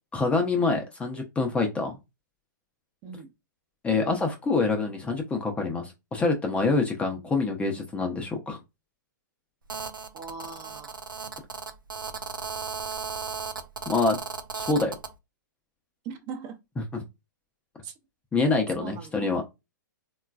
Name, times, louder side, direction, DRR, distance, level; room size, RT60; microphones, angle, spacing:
voice 1, 0.1-2.0 3.8-8.6 13.9-14.2 14.5-15.0 16.9-17.0 18.3-19.5, left 3 dB, 10° left, 0.5 m, -26 dB
Telephone, 9.7-15.1, right 5 dB, 90° right, 0.5 m, -36 dB
voice 2, 10.1-11.0 16.0-16.6 17.8-17.9 18.8-19.3, right 6 dB, 35° right, 0.6 m, -40 dB
3.7 x 2.3 x 2.3 m
figure-of-eight pair, 115°, 11 cm